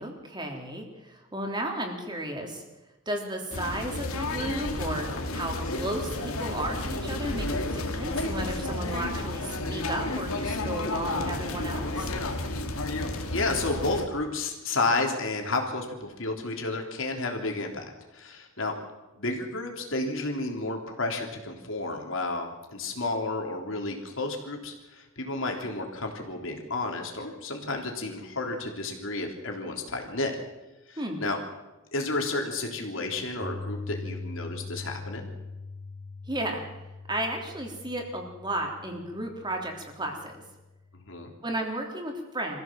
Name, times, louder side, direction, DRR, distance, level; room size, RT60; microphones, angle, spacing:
voice 1, 0.0-2.6 3.0-5.1 5.3-12.1 31.0-31.2 36.3-36.6 37.1-40.4 41.4-42.6, right 1 dB, 20° right, 2 dB, 3.4 m, -34 dB
sound 1, 3.5-14.1, left 2 dB, 90° left, 2.4 m, -31 dB
voice 2, 13.3-17.9 18.1-18.7 19.2-30.3 30.9-31.4 31.9-35.3 40.9-41.3, left 2 dB, 65° left, 2 dB, 3.6 m, -31 dB
Piano, 33.4-41.5, left 3 dB, 15° left, 3.1 m, -42 dB
24.5 x 15.5 x 7.6 m, 1.0 s
head